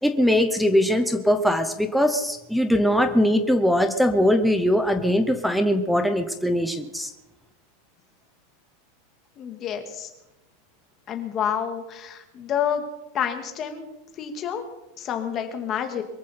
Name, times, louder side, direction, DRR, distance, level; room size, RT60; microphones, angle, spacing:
voice 1, 0.0-7.1, equal, ahead, 6 dB, 0.8 m, -21 dB
voice 2, 9.4-10.1 11.1-12.9 13.1-13.9 14.2-14.6 15.0-16.0, left 8 dB, 25° left, 5 dB, 1.9 m, -28 dB
23.0 x 14.5 x 4.3 m, 0.96 s
supercardioid pair, 170°, 0 cm